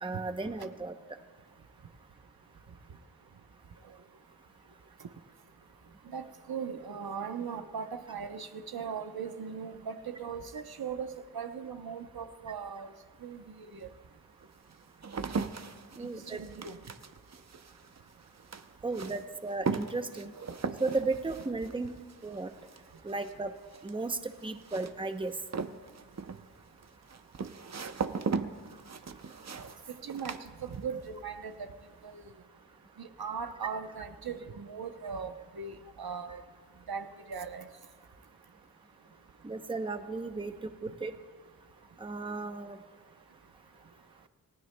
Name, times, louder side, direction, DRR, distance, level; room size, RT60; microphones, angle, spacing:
voice 1, 0.0-0.9 16.0-16.4 18.8-20.3 20.8-21.9 22.2-22.5 23.0-23.5 23.8-25.3 39.4-40.5 40.8-41.1 42.0-42.8, right 3 dB, 15° right, 8 dB, 0.7 m, -34 dB
voice 2, 6.1-12.9 13.2-13.9 16.0-16.8 30.0-31.7 32.0-32.2 33.0-36.4 36.9-37.7, right 6 dB, 80° right, 8 dB, 0.8 m, -39 dB
sound 1, 13.2-13.3 14.0-31.2 31.4-32.0, right 5 dB, 45° right, 0.6 m, -39 dB
28.0 x 16.0 x 2.2 m, 1.5 s
wide cardioid pair, 100°, 36 cm